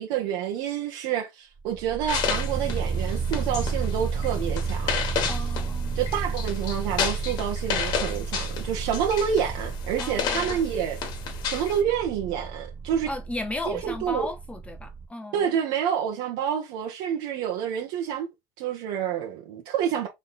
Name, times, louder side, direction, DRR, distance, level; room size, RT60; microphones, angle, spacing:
voice 1, 0.0-5.0 5.9-11.0 11.4-13.1 13.7-14.3 15.3-18.3 18.6-20.1, right 9 dB, 80° right, 1.2 m, -28 dB
sound 1, 1.6-15.1, right 5 dB, 20° right, 0.8 m, -32 dB
sound 2, 2.1-11.8, left 7 dB, 60° left, 1.3 m, -32 dB
voice 2, 5.3-6.0 10.0-10.6 13.1-15.5, left 2 dB, 15° left, 0.6 m, -35 dB
3.6 x 3.2 x 4.0 m
supercardioid pair, 105°, 8 cm